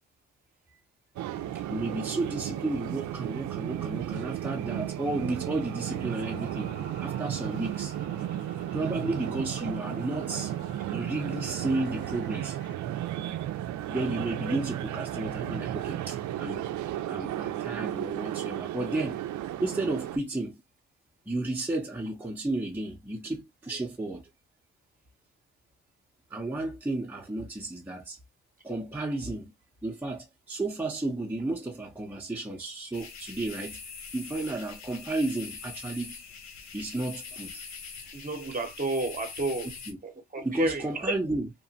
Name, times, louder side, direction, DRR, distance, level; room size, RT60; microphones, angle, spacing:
sound 1, 1.2-20.2, right 12 dB, 65° right, 0.4 m, -34 dB
voice 1, 1.7-7.9 8.7-10.5 10.9-12.6 13.9-16.7 17.1-19.2 19.6-20.6 21.3-24.3 26.3-28.2 28.6-29.5 29.8-33.8 34.1-36.2 36.7-37.7 39.9-40.0 40.4-41.5, right 2 dB, 5° right, 0.7 m, -32 dB
sound 2, 5.5-12.7, left 2 dB, 35° left, 0.9 m, -49 dB
sound 3, 32.9-39.9, left 5 dB, 60° left, 0.8 m, -43 dB
voice 2, 38.1-39.7 40.0-41.1, right 2 dB, 25° right, 0.9 m, -31 dB
2.9 x 2.1 x 2.6 m
cardioid pair, 75°, 31 cm